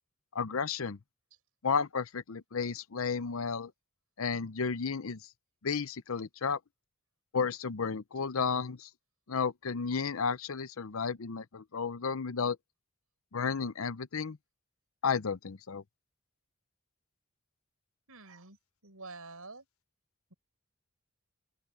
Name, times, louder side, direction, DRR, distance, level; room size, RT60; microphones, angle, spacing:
voice 1, 0.3-1.0 1.6-3.7 4.2-5.2 5.6-6.6 7.3-8.9 9.3-12.6 13.3-14.4 15.0-15.8, left 5 dB, 75° left, 0.7 m, -32 dB
voice 2, 18.1-18.6 18.8-19.7, right 3 dB, 85° right, 5.9 m, -47 dB
open air
head